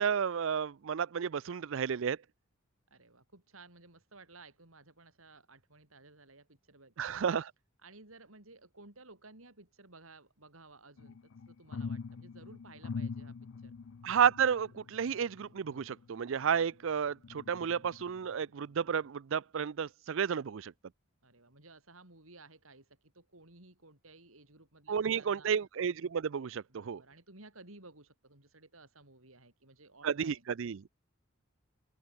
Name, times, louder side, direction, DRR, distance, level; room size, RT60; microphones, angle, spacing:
voice 1, 0.0-2.2 7.0-7.5 14.0-20.7 24.9-27.0 30.0-30.8, right 7 dB, 65° right, 0.4 m, -32 dB
voice 2, 2.9-7.1 7.8-11.2 11.5-13.7 21.2-25.5 26.7-30.4, right 3 dB, 80° right, 5.7 m, -56 dB
sound 1, 11.0-16.7 17.2-18.4 18.8-19.0, left 5 dB, 65° left, 0.5 m, -44 dB
open air
head